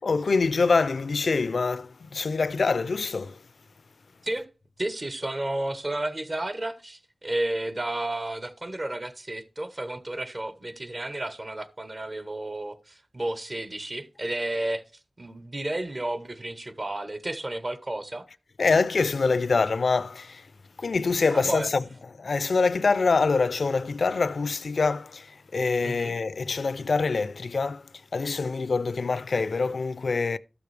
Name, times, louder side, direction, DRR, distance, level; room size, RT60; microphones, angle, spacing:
voice 1, 0.0-3.4 18.6-20.5 20.8-21.8 22.2-27.8 28.1-30.4, left 4 dB, 85° left, 0.4 m, -25 dB
voice 2, 4.8-14.8 15.2-18.2 21.3-21.7 25.8-26.1, right 1 dB, 45° right, 1.1 m, -32 dB
13.0 x 6.9 x 3.3 m
wide cardioid pair, 65°, 0 cm